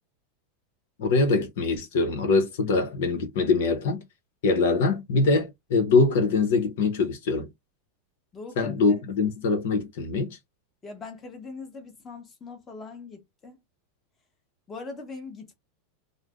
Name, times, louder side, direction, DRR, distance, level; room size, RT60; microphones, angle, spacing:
voice 1, 1.0-4.0 4.4-7.5 8.6-10.4, left 3 dB, 75° left, 0.9 m, -23 dB
voice 2, 8.3-9.0 10.8-13.6 14.7-15.5, left 4 dB, 20° left, 1.1 m, -41 dB
2.5 x 2.1 x 3.5 m
supercardioid pair, 130°, 0 cm